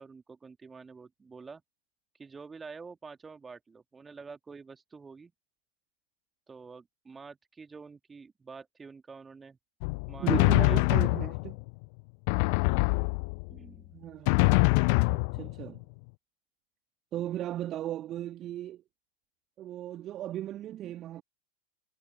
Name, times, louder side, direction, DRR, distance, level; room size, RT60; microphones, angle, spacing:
voice 1, 0.0-1.6 2.2-5.3 6.5-9.6 10.1-10.8 12.4-12.6 13.5-14.0, right 4 dB, 15° right, 2.7 m, -48 dB
Drum, 9.8-11.7 12.3-13.6 14.3-15.8, left 34 dB, 45° left, 0.5 m, -25 dB
voice 2, 10.2-11.6 13.9-14.4 15.1-15.8 17.1-18.8 19.6-21.2, right 13 dB, 30° right, 2.0 m, -36 dB
figure-of-eight pair, 90°, 0 cm